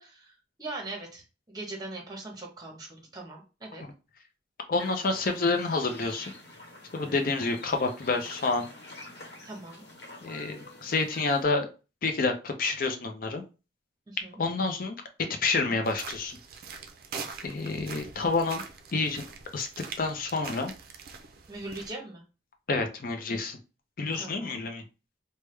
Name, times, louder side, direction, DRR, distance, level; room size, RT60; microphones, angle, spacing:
voice 1, 0.0-3.8 7.1-7.4 9.4-9.8 14.1-14.4 21.5-22.2 24.1-24.6, right 2 dB, 20° right, 0 dB, 0.9 m, -41 dB
voice 2, 4.7-6.3 6.9-8.7 10.2-11.7 12.0-13.4 14.4-14.9 15.4-16.4 17.4-18.6 18.9-19.2 19.5-19.7 20.0-20.7 22.7-23.6 24.0-24.8, left 3 dB, 50° left, 5 dB, 0.5 m, -28 dB
sound 1, 4.8-11.4, left 1 dB, 70° left, 1.0 m, -47 dB
sound 2, 15.8-21.9, right 5 dB, 55° right, 0.4 m, -43 dB
3.4 x 2.1 x 3.2 m, 0.31 s
head